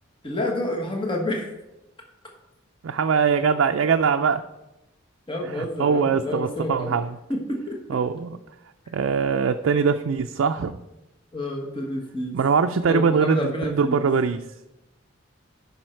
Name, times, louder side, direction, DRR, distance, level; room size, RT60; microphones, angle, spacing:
voice 1, 0.2-1.5 5.3-6.9 7.3-7.8 11.3-12.4 12.9-14.1, left 1 dB, 25° left, 1 dB, 1.3 m, -28 dB
voice 2, 2.8-4.4 5.5-7.2 7.9-8.4 8.9-10.8 12.3-14.4, right 5 dB, 85° right, 6 dB, 0.4 m, -22 dB
10.5 x 5.5 x 4.5 m, 0.96 s
head